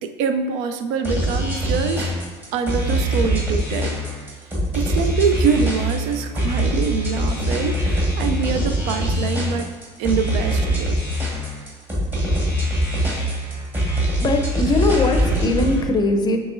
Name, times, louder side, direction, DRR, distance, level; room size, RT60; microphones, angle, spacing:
voice 1, 0.0-2.1 2.5-4.0 4.7-9.7 10.0-11.0, right 6 dB, 70° right, 8 dB, 0.5 m, -24 dB
sound 1, 1.0-15.8, equal, 15° right, 1.5 m, -23 dB
voice 2, 14.2-16.4, left 2 dB, 30° left, 4 dB, 0.5 m, -20 dB
5.9 x 3.0 x 2.5 m, 1.4 s
supercardioid pair, 95°, 15 cm